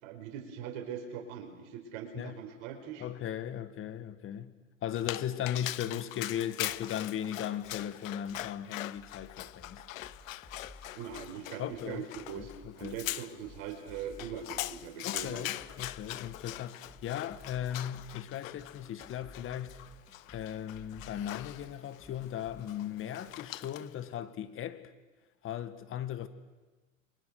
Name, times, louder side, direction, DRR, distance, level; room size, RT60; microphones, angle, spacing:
voice 1, 0.0-3.1 10.9-12.5 12.8-15.4, right 8 dB, 55° right, 4.6 m, -41 dB
voice 2, 3.0-4.5 4.8-9.8 11.6-12.0 12.3-13.0 15.0-19.8 20.3-24.9 25.4-26.3, left 10 dB, 30° left, 1.7 m, -37 dB
Dog, 5.0-24.0, left 15 dB, 75° left, 0.8 m, -42 dB
sound 1, 7.6-22.6, left 1 dB, 15° left, 3.6 m, -56 dB
29.5 x 23.5 x 6.5 m
hypercardioid pair, 110°, 40 cm